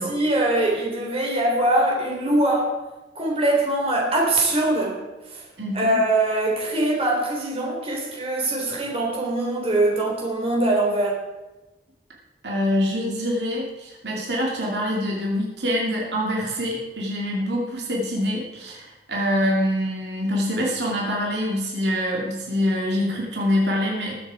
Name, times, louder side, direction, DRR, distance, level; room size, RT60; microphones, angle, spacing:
voice 1, 0.0-2.7 3.2-5.0 5.3-5.4 5.7-11.2, right 1 dB, 35° right, -2 dB, 3.5 m, -22 dB
voice 2, 5.6-6.0 12.4-24.2, equal, 75° right, -2 dB, 2.6 m, -25 dB
21.0 x 7.4 x 4.9 m, 1.1 s
head